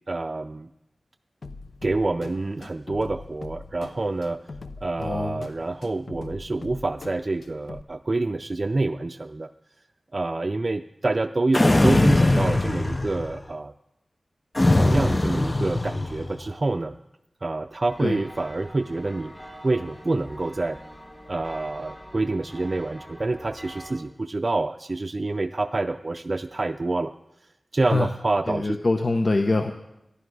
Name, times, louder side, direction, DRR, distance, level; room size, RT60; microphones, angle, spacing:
voice 1, 0.1-0.7 1.8-4.5 4.8-9.5 10.1-13.7 14.7-17.0 17.4-19.3 19.6-20.8 21.3-27.1 27.7-28.8, right 2 dB, 45° right, 6 dB, 0.4 m, -27 dB
sound 1, 1.4-7.8, left 3 dB, 90° left, 0.7 m, -42 dB
voice 2, 5.0-5.5 18.0-18.2 27.9-28.1 28.5-29.7, left 2 dB, 60° left, 5 dB, 0.8 m, -24 dB
sound 2, 11.5-13.4 14.6-16.4, left 2 dB, 30° left, 0.5 m, -21 dB
sound 3, 17.9-23.9, equal, 15° left, 3.4 m, -44 dB
14.5 x 11.0 x 4.8 m, 0.88 s
wide cardioid pair, 60°, 0 cm